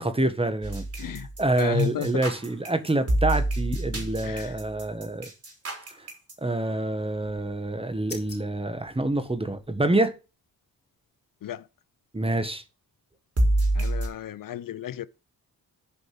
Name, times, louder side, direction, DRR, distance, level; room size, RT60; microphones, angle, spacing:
voice 1, 0.0-1.1 1.4-5.3 6.4-10.1 12.1-12.6, right 2 dB, 15° right, 1.5 m, -27 dB
sound 1, 0.6-6.3 13.4-14.1, right 1 dB, 40° right, 4.1 m, -27 dB
voice 2, 1.0-1.3 1.6-2.2 3.9-4.6 11.4-11.7 13.7-15.1, left 10 dB, 65° left, 0.6 m, -32 dB
sound 2, 7.0-9.8, left 3 dB, 30° left, 4.4 m, -48 dB
8.4 x 5.2 x 7.6 m
cardioid pair, 80°, 36 cm